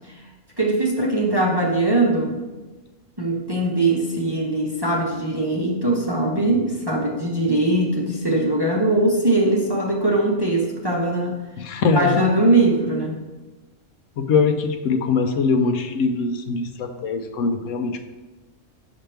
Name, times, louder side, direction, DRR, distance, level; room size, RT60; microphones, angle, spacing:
voice 1, 0.6-2.3 3.2-11.4 11.9-13.2, right 2 dB, 25° right, -2 dB, 0.7 m, -21 dB
voice 2, 11.6-12.2 14.2-18.0, left 4 dB, 80° left, 7 dB, 1.0 m, -22 dB
7.1 x 5.9 x 3.4 m, 1.2 s
omnidirectional pair, 1.3 m